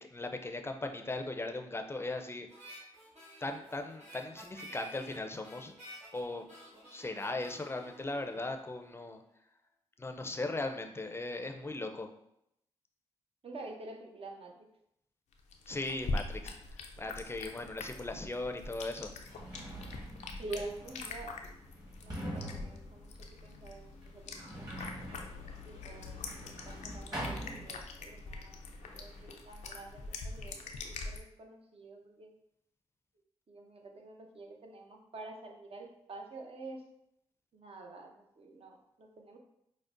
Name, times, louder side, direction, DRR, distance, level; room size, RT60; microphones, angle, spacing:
voice 1, 0.1-2.5 3.4-5.7 6.1-6.5 6.9-9.2 10.0-12.1 15.7-16.6 17.0-19.1, left 2 dB, 20° left, 5 dB, 0.5 m, -38 dB
Harmonica, 2.5-9.0, right 1 dB, 75° right, 1.4 m, -52 dB
voice 2, 13.4-14.7 20.4-21.3 21.7-23.1 23.4-24.7 25.6-28.6 28.9-32.3 33.5-36.8 37.5-39.4, right 2 dB, 55° right, 2 dB, 0.7 m, -48 dB
sound 1, 15.3-31.2, left 3 dB, 85° left, 0.4 m, -43 dB
Sliding door, 18.3-18.4 19.1-28.2 28.5-29.3, equal, 35° right, 1.4 m, -45 dB
4.9 x 2.0 x 2.5 m, 0.77 s
supercardioid pair, 40°, 12 cm